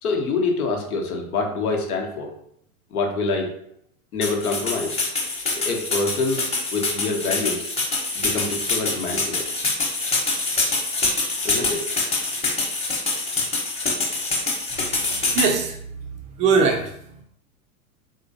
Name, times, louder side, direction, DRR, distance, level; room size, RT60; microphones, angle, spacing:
voice 1, 0.0-2.3 2.9-3.5 4.1-5.0 5.5-6.4 6.7-7.6 8.1-9.5 11.4-11.9, left 3 dB, 75° left, 2 dB, 1.0 m, -25 dB
sound 1, 4.2-15.5, left 3 dB, 15° left, 1.0 m, -25 dB
voice 2, 15.3-15.8 16.4-17.2, right 5 dB, 20° right, 3 dB, 0.3 m, -22 dB
3.7 x 2.9 x 2.6 m, 0.70 s
hypercardioid pair, 100°, 44 cm